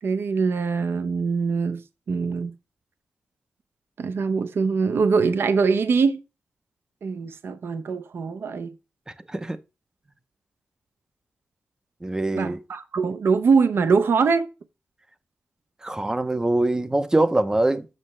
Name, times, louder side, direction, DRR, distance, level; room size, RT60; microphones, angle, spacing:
voice 1, 0.0-2.5 4.0-6.2 7.0-8.7 12.3-14.5, right 5 dB, 60° right, 0.7 m, -23 dB
voice 2, 12.0-12.6 15.8-17.9, right 2 dB, 15° right, 0.7 m, -23 dB
7.6 x 6.6 x 3.1 m
wide cardioid pair, 140°, 4 cm